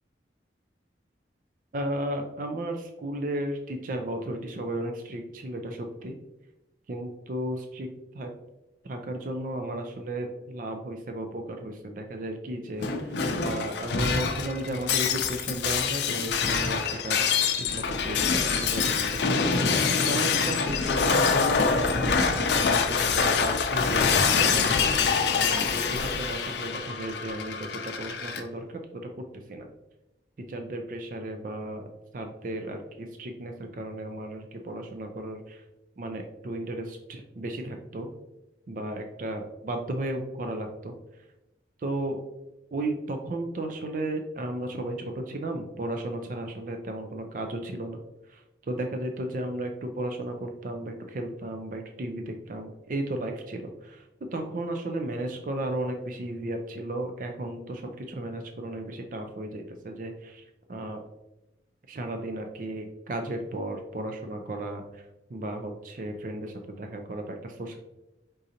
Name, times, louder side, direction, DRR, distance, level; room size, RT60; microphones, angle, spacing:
voice 1, 1.7-6.2 6.9-8.3 8.8-13.2 13.4-25.1 25.3-29.7 30.4-31.8 32.1-35.6 36.0-38.1 38.7-41.2 41.8-42.2 42.7-48.0 48.3-61.0 61.9-67.8, right 1 dB, 50° right, 4 dB, 0.4 m, -34 dB
Shatter, 12.8-28.4, left 5 dB, 80° left, 0.5 m, -25 dB
5.0 x 3.8 x 2.8 m, 0.97 s
head